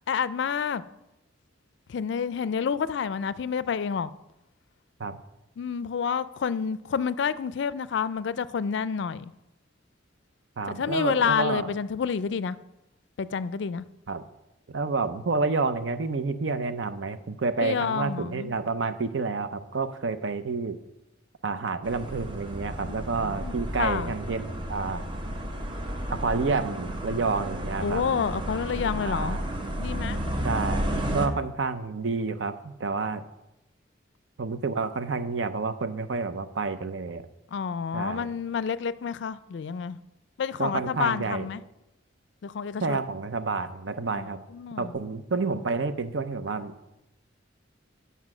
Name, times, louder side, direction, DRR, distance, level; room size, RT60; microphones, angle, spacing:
voice 1, 0.1-0.8 1.9-4.1 5.6-9.3 10.7-12.6 13.2-13.8 17.6-18.5 23.4-23.5 23.8-24.1 27.8-29.4 29.8-30.2 37.5-40.0 40.4-41.6 42.4-43.0 44.1-44.9, left 6 dB, 65° left, 0.4 m, -29 dB
voice 2, 10.6-11.7 14.1-14.2 14.7-20.8 21.4-25.0 26.1-28.1 29.0-29.4 30.4-33.2 34.4-37.3 37.9-38.3 40.6-41.5 42.8-44.4 44.8-46.7, right 4 dB, 70° right, 0.6 m, -29 dB
sound 1, 21.8-31.3, equal, 25° right, 0.9 m, -32 dB
9.6 x 5.5 x 6.0 m
head